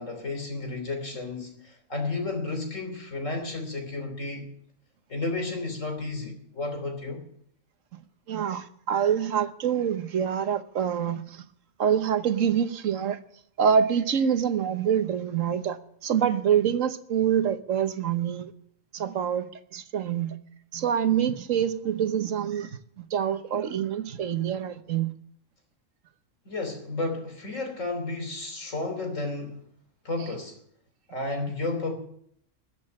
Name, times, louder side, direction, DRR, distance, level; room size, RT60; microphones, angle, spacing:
voice 1, 0.0-4.5 5.1-7.2 26.5-29.6 30.1-30.6 31.1-31.9, left 2 dB, 80° left, 3.5 m, -32 dB
voice 2, 8.3-11.4 11.8-13.2 13.6-18.5 18.9-20.4 20.7-25.1, right 8 dB, 90° right, 1.4 m, -26 dB
14.0 x 8.4 x 9.9 m
omnidirectional pair, 1.3 m